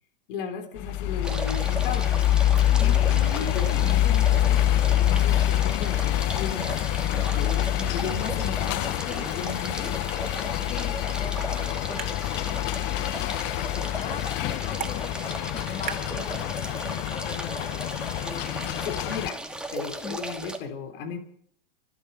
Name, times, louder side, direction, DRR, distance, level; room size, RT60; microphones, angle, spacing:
voice 1, 0.3-2.1 2.5-9.9 18.8-19.4 19.7-21.2, left 5 dB, 60° left, 6 dB, 3.6 m, -36 dB
sound 1, 0.8-19.3, left 13 dB, 40° left, 0.7 m, -26 dB
sound 2, 1.2-20.6, right 1 dB, 5° right, 2.4 m, -37 dB
voice 2, 2.8-3.1 9.1-9.3 10.7-17.7 20.0-20.2, left 5 dB, 25° left, 5 dB, 2.3 m, -42 dB
sound 3, 11.1-17.1, right 9 dB, 30° right, 3.0 m, -44 dB
25.5 x 9.5 x 5.4 m, 0.63 s
hypercardioid pair, 95°, 30 cm